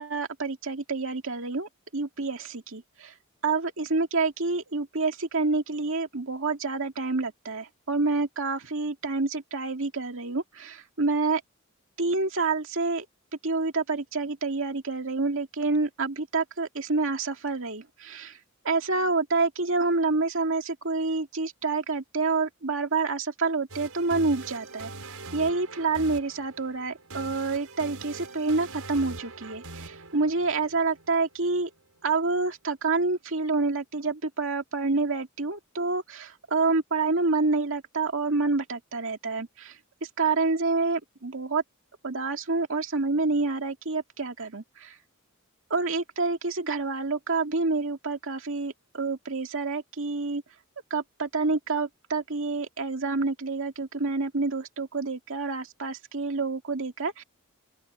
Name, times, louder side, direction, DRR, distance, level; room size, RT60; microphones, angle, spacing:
voice 1, 0.0-3.1 3.4-11.4 12.0-13.1 13.4-18.4 18.6-24.9 25.3-31.7 32.0-39.8 40.2-41.6 42.0-45.0 45.7-50.4 50.9-57.2, right 3 dB, 65° right, 2.4 m, -28 dB
sound 1, 23.7-31.6, right 3 dB, 80° right, 5.1 m, -42 dB
open air
head